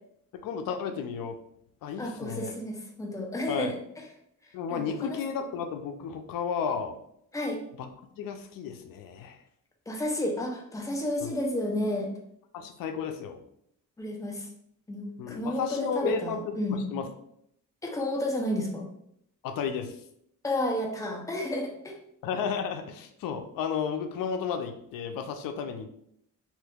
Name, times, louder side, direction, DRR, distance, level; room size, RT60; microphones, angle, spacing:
voice 1, 0.4-1.4 1.8-2.5 3.5-3.7 4.5-7.0 7.8-7.9 8.2-9.4 11.2-11.3 12.5-13.4 15.2-17.0 19.4-20.0 22.2-25.9, left 6 dB, 85° left, 7 dB, 0.5 m, -33 dB
voice 2, 2.0-3.8 4.7-5.2 7.3-7.6 9.9-12.1 14.0-14.5 14.9-16.8 17.8-18.9 20.4-21.9, left 1 dB, 10° left, 0 dB, 0.6 m, -31 dB
2.8 x 2.5 x 3.5 m, 0.73 s
cardioid pair, 120°, 33 cm